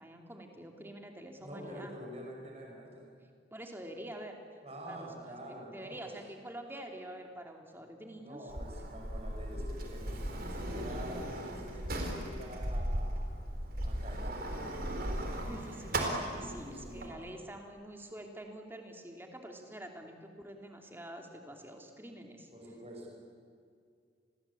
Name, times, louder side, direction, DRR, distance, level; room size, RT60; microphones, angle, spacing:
voice 1, 0.0-1.9 3.5-4.3 4.8-5.4 5.7-8.5 15.5-22.5, right 1 dB, 10° right, 3 dB, 2.8 m, -47 dB
voice 2, 1.4-3.0 4.6-6.1 8.2-13.2 13.8-15.5 16.3-17.1 22.5-23.2, equal, 30° right, -1 dB, 6.1 m, -47 dB
Sliding door, 8.5-17.1, right 1 dB, 50° right, 4.0 m, -37 dB
29.5 x 21.5 x 8.5 m, 2.2 s
head